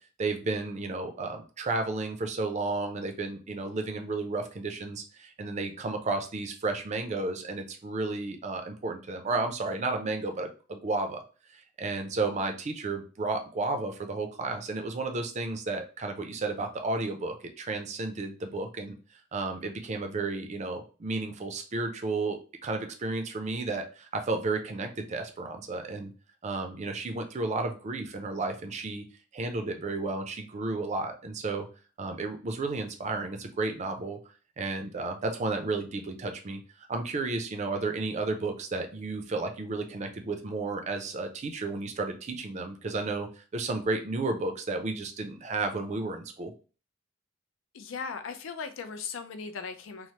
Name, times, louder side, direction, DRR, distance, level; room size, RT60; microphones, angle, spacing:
voice 1, 0.2-11.2 11.5-19.0 19.3-26.1 26.4-29.0 29.3-31.7 32.0-34.2 34.6-36.6 36.9-46.5, right 3 dB, 35° right, 5 dB, 0.4 m, -32 dB
voice 2, 47.7-50.1, left 5 dB, 75° left, 8 dB, 0.4 m, -38 dB
3.1 x 2.0 x 2.8 m, 0.36 s
head